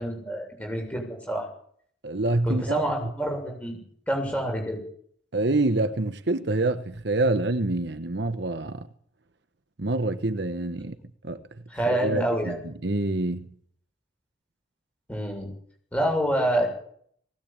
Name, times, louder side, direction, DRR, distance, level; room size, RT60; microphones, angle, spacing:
voice 1, 0.0-1.5 2.4-3.8 4.1-4.8 11.7-12.6 15.1-15.5 15.9-16.7, right 1 dB, 5° left, 7.0 m, -27 dB
voice 2, 2.0-2.8 5.3-8.9 9.8-11.0 11.2-11.4 11.9-13.5, right 2 dB, 55° right, 1.1 m, -26 dB
19.5 x 18.0 x 8.8 m
head